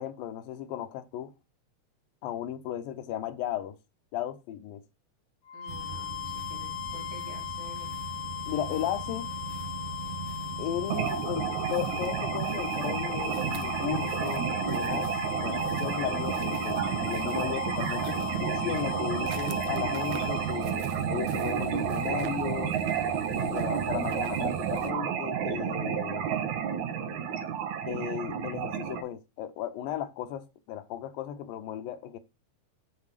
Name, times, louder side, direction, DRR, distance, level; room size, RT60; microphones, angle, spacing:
voice 1, 0.0-1.3 2.2-3.8 4.1-4.8 8.5-9.3 10.6-20.8 21.1-22.8 23.3-26.3 27.8-32.2, left 11 dB, 85° left, 2.7 m, -35 dB
sound 1, 5.5-20.8, left 14 dB, 70° left, 2.2 m, -38 dB
voice 2, 5.5-7.9, right 1 dB, 30° right, 3.5 m, -48 dB
sound 2, 5.7-24.9, right 8 dB, 85° right, 1.4 m, -40 dB
sound 3, 10.9-29.0, right 8 dB, 65° right, 2.3 m, -31 dB
7.3 x 6.4 x 4.9 m
omnidirectional pair, 4.0 m